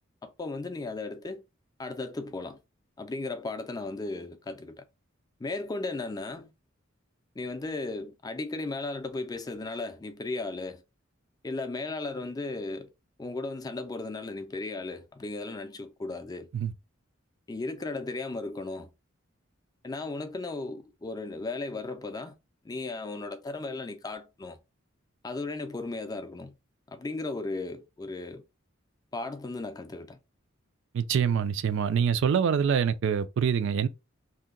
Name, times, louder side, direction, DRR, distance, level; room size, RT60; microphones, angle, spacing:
voice 1, 0.2-1.4 1.8-2.6 3.0-4.8 5.4-6.5 7.4-10.8 11.4-12.9 13.2-16.5 17.5-18.9 19.8-22.3 22.6-24.6 25.2-26.6 26.9-28.4 29.1-30.2, left 3 dB, 20° left, 0.4 m, -36 dB
voice 2, 30.9-33.9, right 7 dB, 65° right, 0.3 m, -25 dB
2.8 x 2.1 x 3.6 m
head